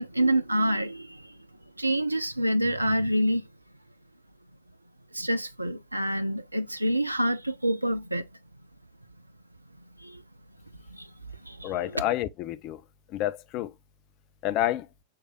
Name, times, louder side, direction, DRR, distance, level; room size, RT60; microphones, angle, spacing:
voice 1, 0.0-1.4 1.8-3.4 5.1-8.3 10.0-10.2 10.9-11.1 11.4-12.0, right 1 dB, 85° right, 0.3 m, -27 dB
voice 2, 11.6-12.8 13.1-13.7 14.4-14.9, left 13 dB, 40° left, 0.4 m, -29 dB
6.6 x 3.2 x 2.2 m
figure-of-eight pair, 90°, 0 cm